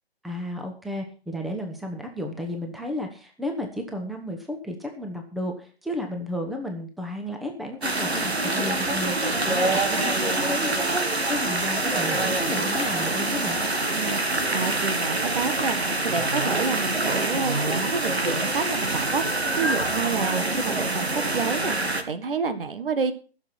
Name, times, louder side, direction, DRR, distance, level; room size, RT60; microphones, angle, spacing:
voice 1, 0.2-13.6, left 1 dB, ahead, 3 dB, 1.2 m, -33 dB
sound 1, 7.8-22.0, right 2 dB, 85° right, 2.0 m, -25 dB
voice 2, 13.9-23.1, right 5 dB, 60° right, 10 dB, 1.7 m, -29 dB
15.0 x 7.2 x 6.0 m, 0.37 s
figure-of-eight pair, 130°, 31 cm